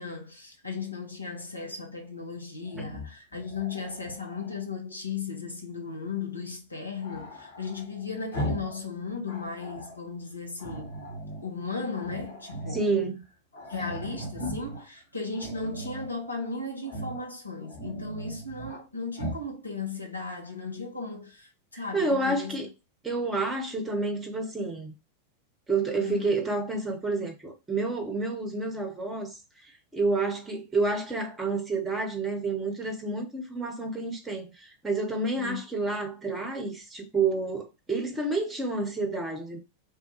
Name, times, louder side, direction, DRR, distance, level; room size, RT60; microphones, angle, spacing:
voice 1, 0.0-10.9 11.4-12.8 13.7-22.6 26.0-26.3 35.4-35.6, left 4 dB, 85° left, 0.8 m, -36 dB
Growling, 2.6-4.7 7.0-8.8 9.1-10.0 10.6-11.5 11.9-12.9 13.2-13.3 13.5-14.8 15.3-16.1 16.8-17.3 17.6-18.8 19.1-19.5, equal, 65° left, 1.4 m, -38 dB
voice 2, 12.7-13.2 21.9-22.7 23.0-24.9 25.7-39.6, right 3 dB, 15° right, 0.9 m, -29 dB
3.5 x 2.2 x 2.9 m
figure-of-eight pair, 90°, 0 cm